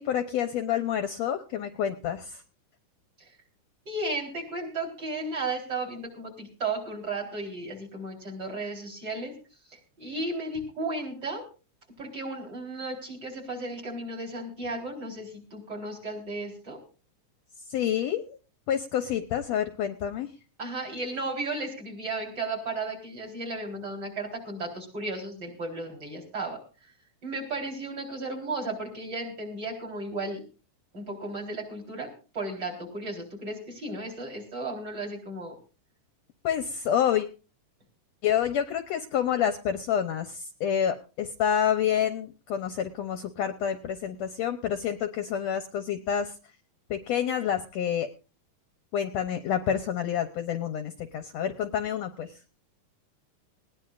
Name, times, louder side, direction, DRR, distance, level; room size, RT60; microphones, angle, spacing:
voice 1, 0.0-2.4 17.7-18.4 18.7-20.3 36.4-37.3 38.2-46.3 46.9-48.1 48.9-52.4, left 9 dB, 70° left, 8 dB, 1.7 m, -28 dB
voice 2, 3.9-9.3 9.7-11.4 12.0-16.8 20.6-26.9 27.2-30.4 30.9-32.1 32.3-35.6, right 2 dB, 30° right, -1 dB, 4.5 m, -34 dB
20.0 x 18.0 x 2.5 m, 0.35 s
omnidirectional pair, 3.7 m